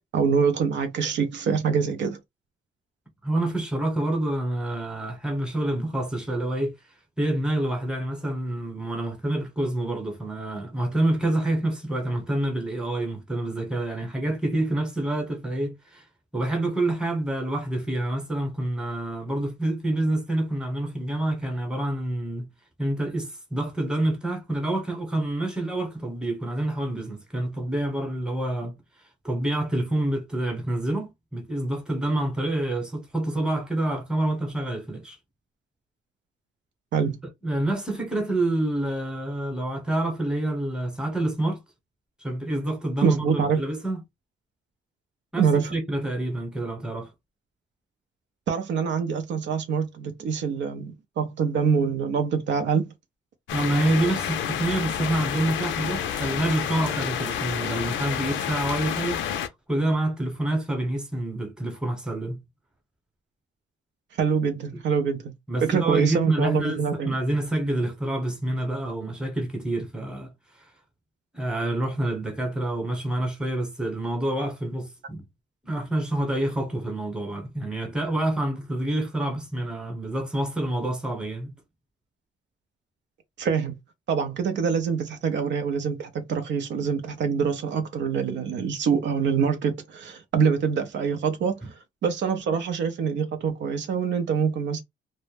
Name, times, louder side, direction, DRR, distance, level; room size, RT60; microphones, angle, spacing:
voice 1, 0.1-2.2 36.9-37.2 43.0-43.6 45.4-45.7 48.5-52.9 64.2-65.3 65.6-67.1 83.4-83.7 84.1-91.7 92.0-94.8, right 6 dB, 65° right, 0.5 m, -25 dB
voice 2, 3.2-6.8 7.2-16.0 16.3-22.5 22.8-28.8 29.2-35.2 37.4-41.6 42.2-44.0 45.3-47.1 53.5-59.2 59.7-62.4 65.5-70.3 71.3-75.2 75.6-81.5 91.6-91.7, right 1 dB, 5° right, 0.9 m, -27 dB
sound 1, 53.5-59.5, left 9 dB, 70° left, 0.4 m, -29 dB
2.0 x 2.0 x 3.1 m
cardioid pair, 90°, 20 cm